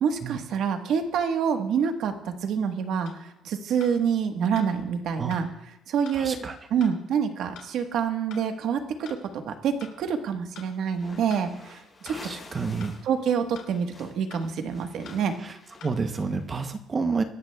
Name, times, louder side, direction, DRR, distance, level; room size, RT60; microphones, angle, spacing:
voice 1, 0.0-5.5 5.9-6.4 6.7-9.2 9.4-12.2 13.0-15.3, right 7 dB, 65° right, 6 dB, 1.3 m, -27 dB
sound 1, 3.0-3.2 3.8-3.9 4.5-4.7 5.3-5.4 6.0-6.2 6.8-6.9 7.5-7.7 8.3-8.4 9.0-9.2 9.8-9.9 10.5-10.7 11.3-11.4 12.0-12.2 12.8-13.0 13.5-13.7 14.3-14.4 15.0-15.2 15.8-15.9, left 8 dB, 80° left, 2.8 m, -46 dB
voice 2, 6.1-6.6 12.1-12.9 15.4-15.5 15.8-17.2, right 4 dB, 30° right, 7 dB, 0.8 m, -29 dB
sound 2, 10.9-13.1 13.4-16.5, left 3 dB, 20° left, 5.3 m, -49 dB
25.0 x 13.0 x 2.3 m, 0.92 s
cardioid pair, 140°, 0 cm